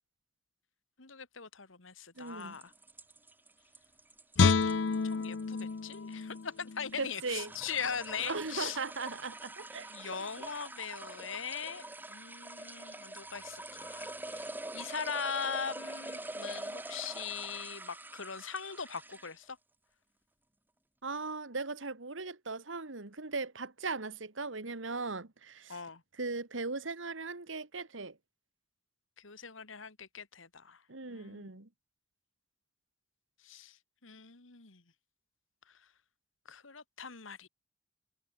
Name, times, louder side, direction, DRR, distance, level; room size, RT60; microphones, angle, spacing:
voice 1, 1.0-2.7 4.8-8.8 9.9-19.6 25.7-26.0 29.2-30.8 31.1-31.5 33.4-33.8 34.0-34.8 36.5-37.5, left 6 dB, 90° left, 2.3 m, -41 dB
voice 2, 2.2-2.6 7.0-7.5 8.2-10.3 21.0-25.8 26.2-28.2 30.9-31.7, right 3 dB, 75° right, 1.9 m, -38 dB
sound 1, 2.3-19.4, right 2 dB, 10° right, 1.7 m, -45 dB
Guitar, 4.4-7.5 7.9-8.1, left 4 dB, 65° left, 0.6 m, -30 dB
head